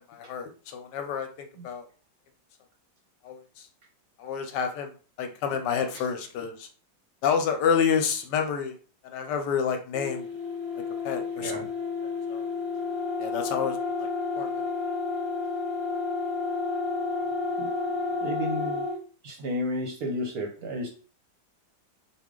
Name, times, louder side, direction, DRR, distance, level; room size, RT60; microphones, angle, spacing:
voice 1, 0.1-1.9 3.2-3.7 4.2-4.9 5.2-6.7 7.2-8.7 9.0-10.3 10.7-11.6 12.3-12.5 13.2-13.8 14.4-14.6, left 7 dB, 75° left, 6 dB, 1.1 m, -29 dB
sound 1, 9.9-19.0, left 4 dB, 20° left, 0.7 m, -31 dB
voice 2, 18.2-18.9 19.2-20.9, left 1 dB, 65° right, 1 dB, 1.0 m, -32 dB
4.2 x 2.4 x 3.6 m, 0.39 s
omnidirectional pair, 2.1 m